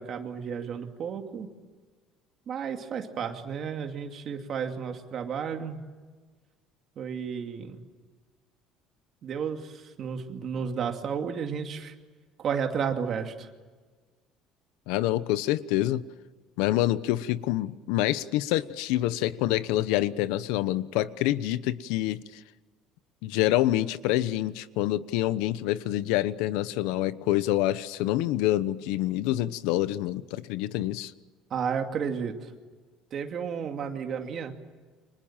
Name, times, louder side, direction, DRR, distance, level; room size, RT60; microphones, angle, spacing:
voice 1, 0.0-1.5 2.5-5.8 7.0-7.8 9.2-9.6 10.0-11.9 12.4-13.3 31.5-32.4 33.1-34.5, right 7 dB, 35° right, 4 dB, 2.5 m, -32 dB
voice 2, 14.9-16.0 16.6-22.2 23.2-31.1, left 14 dB, 85° left, 15 dB, 1.0 m, -26 dB
29.5 x 25.5 x 7.4 m, 1.4 s
cardioid pair, 180°, 0 cm